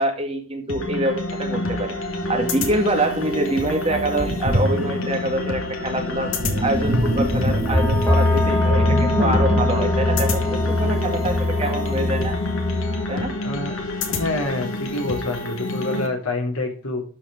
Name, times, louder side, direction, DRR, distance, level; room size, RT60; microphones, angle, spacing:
voice 1, 0.0-2.0 2.3-6.3 6.6-12.4 13.1-13.4, right 1 dB, 25° right, 3 dB, 2.1 m, -25 dB
sound 1, 0.7-16.1, left 2 dB, 70° left, 2.1 m, -28 dB
Sink (filling or washing), 3.2-3.3 3.9-11.2, equal, 85° right, 3.9 m, -26 dB
sound 2, 6.7-13.1, left 2 dB, 10° left, 1.4 m, -22 dB
voice 2, 14.1-17.0, left 2 dB, 90° left, 2 dB, 3.4 m, -27 dB
12.5 x 4.9 x 6.3 m, 0.42 s
head